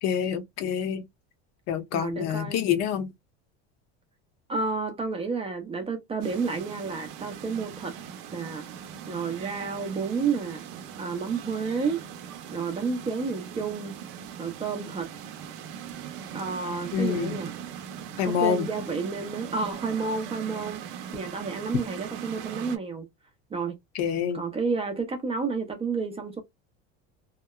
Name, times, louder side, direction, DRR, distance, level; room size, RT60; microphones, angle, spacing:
voice 1, 0.0-1.0 1.7-3.1 16.9-17.4 18.2-18.7 23.9-24.4, left 8 dB, 50° left, 0.7 m, -27 dB
voice 2, 1.9-2.6 4.5-7.9 8.3-8.6 9.1-10.7 11.0-12.0 12.5-13.9 14.4-15.1 16.3-17.5 18.4-20.8 21.1-23.1 23.5-23.8 24.3-26.4, right 4 dB, 15° right, 0.5 m, -30 dB
sound 1, 6.2-22.8, right 8 dB, 65° right, 0.6 m, -40 dB
2.8 x 2.0 x 2.2 m
cardioid pair, 140°, 34 cm